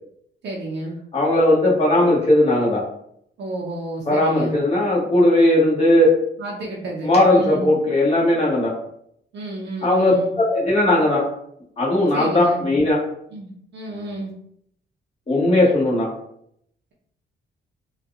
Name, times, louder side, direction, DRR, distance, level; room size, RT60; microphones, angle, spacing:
voice 1, 0.4-1.0 3.4-4.5 6.4-7.7 9.3-10.3 12.1-12.6 13.3-14.3, right 2 dB, 65° right, -4 dB, 0.7 m, -31 dB
voice 2, 1.1-2.8 4.1-6.2 7.0-8.7 9.8-11.2 11.8-13.0 15.3-16.1, left 1 dB, 30° left, -5 dB, 1.5 m, -17 dB
3.9 x 2.4 x 2.4 m, 0.70 s
cardioid pair, 105°, 19 cm